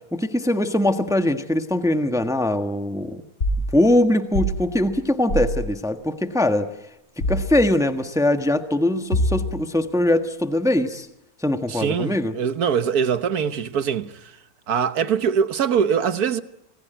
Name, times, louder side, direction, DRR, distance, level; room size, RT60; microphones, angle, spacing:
voice 1, 0.1-3.2 3.7-6.7 7.3-11.1 11.4-12.3, left 1 dB, ahead, 1.3 m, -21 dB
sound 1, 3.4-3.7 4.3-4.6 5.3-5.6 7.2-7.5 9.1-9.6, equal, 60° left, 7.1 m, -23 dB
voice 2, 11.7-14.3 14.7-16.4, right 7 dB, 85° right, 1.7 m, -23 dB
27.5 x 20.0 x 9.2 m
omnidirectional pair, 1.6 m